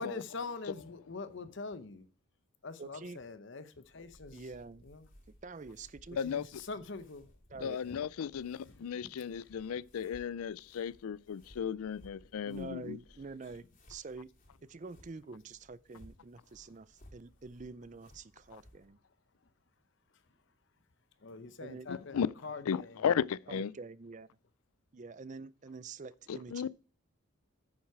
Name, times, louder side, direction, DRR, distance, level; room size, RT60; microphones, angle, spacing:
voice 1, 0.0-2.1 2.6-4.4 4.8-5.1 6.2-7.3 7.8-8.0 8.7-9.1 21.2-23.0, left 3 dB, 55° left, 0.8 m, -44 dB
voice 2, 2.8-3.2 4.3-4.9 5.3-6.2 7.5-7.8 12.4-14.3 14.6-19.0 21.6-21.9 23.5-24.3 24.9-26.7, right 4 dB, 35° right, 0.4 m, -47 dB
sound 1, 3.8-18.9, equal, 40° left, 2.8 m, -61 dB
voice 3, 7.6-13.0 21.9-22.3 22.7-23.7 26.3-26.7, left 7 dB, 85° left, 0.4 m, -35 dB
9.5 x 7.3 x 4.7 m
head